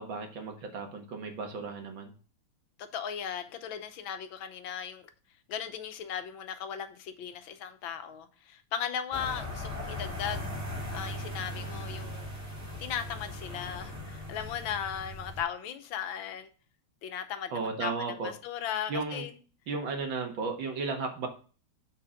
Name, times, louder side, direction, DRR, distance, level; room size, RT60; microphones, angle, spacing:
voice 1, 0.0-2.1 17.5-18.3 18.9-19.3 19.7-21.3, right 4 dB, 65° right, 2.1 m, -34 dB
voice 2, 2.8-5.1 5.5-10.4 10.9-12.3 12.8-16.5 17.0-19.3, left 8 dB, 70° left, 1.6 m, -37 dB
sound 1, 9.1-15.4, left 1 dB, ahead, 3.3 m, -39 dB
8.5 x 4.4 x 5.1 m
omnidirectional pair, 2.4 m